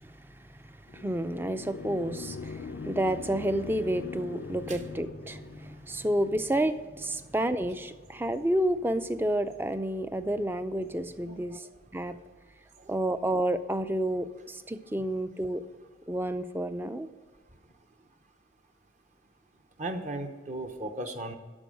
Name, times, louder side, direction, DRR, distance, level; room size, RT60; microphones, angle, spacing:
voice 1, 0.0-11.7 11.9-12.1 12.9-15.6 16.1-17.1, right 1 dB, 10° right, 0.4 m, -30 dB
sound 1, 0.9-5.8, left 4 dB, 60° left, 0.4 m, -41 dB
voice 2, 11.2-11.7 12.1-12.2 12.8-12.9 19.8-21.4, right 2 dB, 35° right, 0.8 m, -37 dB
12.5 x 4.6 x 6.2 m
head